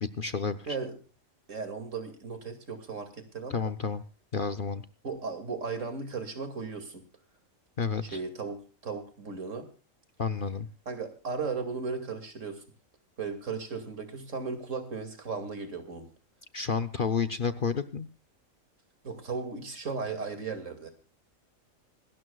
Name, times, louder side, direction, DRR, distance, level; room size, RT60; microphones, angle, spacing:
voice 1, 0.0-0.7 3.5-4.0 4.3-4.8 7.8-8.2 10.2-10.7 16.5-18.1, left 5 dB, 45° left, 10 dB, 0.8 m, -30 dB
voice 2, 1.5-3.6 5.0-7.0 8.1-9.7 10.9-12.6 13.2-16.1 19.0-20.9, right 4 dB, 65° right, 7 dB, 2.7 m, -36 dB
26.0 x 12.5 x 2.3 m, 0.34 s
omnidirectional pair, 1.4 m